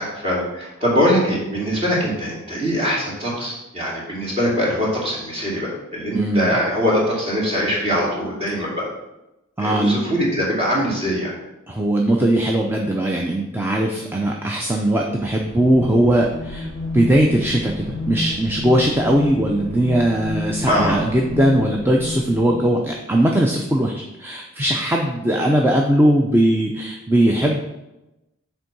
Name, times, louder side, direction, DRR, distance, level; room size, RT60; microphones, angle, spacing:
voice 1, 0.0-8.8 9.6-11.3 20.6-21.0, equal, 30° right, -5 dB, 2.5 m, -22 dB
voice 2, 6.1-6.6 9.6-10.0 11.7-16.7 16.9-27.6, right 1 dB, 10° right, 0 dB, 0.5 m, -19 dB
sound 1, 15.2-22.9, left 1 dB, 80° right, 3.0 m, -30 dB
6.6 x 4.5 x 6.1 m, 0.96 s
head